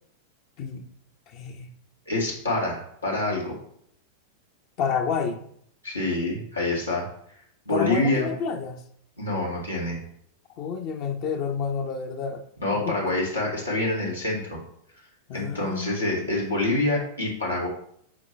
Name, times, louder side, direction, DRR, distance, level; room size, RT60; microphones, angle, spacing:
voice 1, 0.6-0.9 1.3-1.7 4.8-5.4 7.7-8.8 10.6-12.4 12.7-13.2 15.3-16.5, left 6 dB, 40° left, 6 dB, 0.8 m, -30 dB
voice 2, 2.1-3.6 5.8-7.1 7.7-8.3 9.2-10.0 12.6-14.6 15.3-17.7, left 2 dB, 85° left, -4 dB, 2.2 m, -26 dB
7.4 x 4.5 x 3.3 m, 0.67 s
figure-of-eight pair, 90°, 0 cm